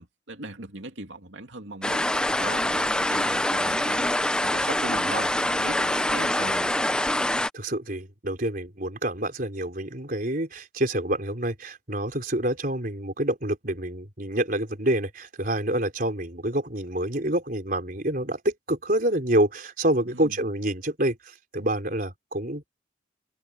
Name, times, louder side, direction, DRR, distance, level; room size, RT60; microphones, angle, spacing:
voice 1, 0.0-2.1 2.4-4.1 4.4-6.7 20.1-20.4, right 2 dB, 75° right, 2.8 m, -38 dB
sound 1, 1.8-7.5, left 1 dB, 5° left, 0.7 m, -25 dB
voice 2, 7.5-22.7, right 1 dB, 50° right, 4.5 m, -27 dB
head